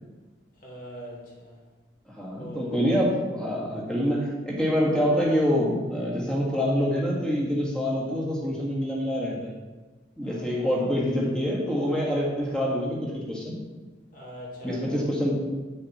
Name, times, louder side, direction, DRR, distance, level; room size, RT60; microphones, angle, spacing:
voice 1, 0.6-1.5 2.4-2.9 10.2-11.0 14.1-15.1, equal, 45° left, -4 dB, 2.5 m, -41 dB
voice 2, 2.1-9.5 10.2-13.6 14.6-15.4, equal, 5° left, -4 dB, 1.7 m, -26 dB
8.9 x 6.5 x 4.3 m, 1.3 s
head